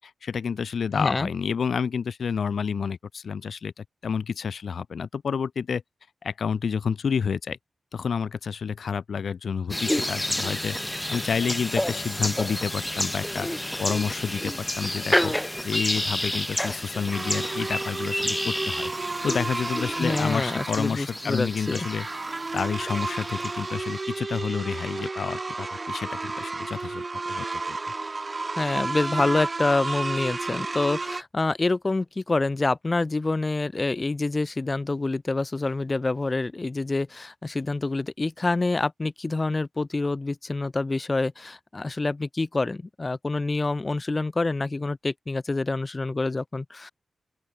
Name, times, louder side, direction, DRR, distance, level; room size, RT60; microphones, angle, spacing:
voice 1, 0.0-5.8 6.2-7.6 7.9-10.8 11.1-13.5 13.8-15.3 15.6-18.9 19.2-22.1 22.5-27.8, left 6 dB, 70° left, 5.6 m, -29 dB
voice 2, 0.9-1.3 20.0-21.9 28.6-46.9, left 3 dB, 30° left, 7.1 m, -27 dB
sound 1, 9.7-23.7, left 1 dB, 10° left, 3.5 m, -30 dB
sound 2, 17.1-31.2, right 3 dB, 35° right, 2.3 m, -32 dB
open air
wide cardioid pair, 90°, 0 cm